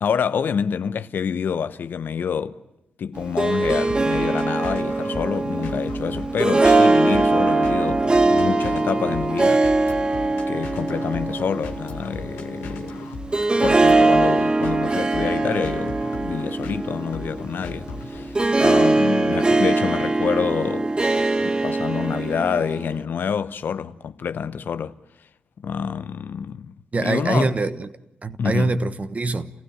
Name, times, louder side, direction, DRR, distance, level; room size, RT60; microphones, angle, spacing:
voice 1, 0.0-2.6 3.0-9.6 10.5-13.1 13.6-20.9 21.4-24.9 25.6-26.7 27.0-27.5 28.4-28.8, left 7 dB, 65° left, 0.8 m, -27 dB
Harp, 3.2-23.0, right 2 dB, 25° right, 1.2 m, -21 dB
sound 1, 3.5-18.5, left 3 dB, 90° left, 1.6 m, -38 dB
voice 2, 26.9-27.9 28.2-29.5, right 3 dB, 40° right, 1.2 m, -23 dB
28.5 x 16.0 x 9.8 m
supercardioid pair, 40°, 4 cm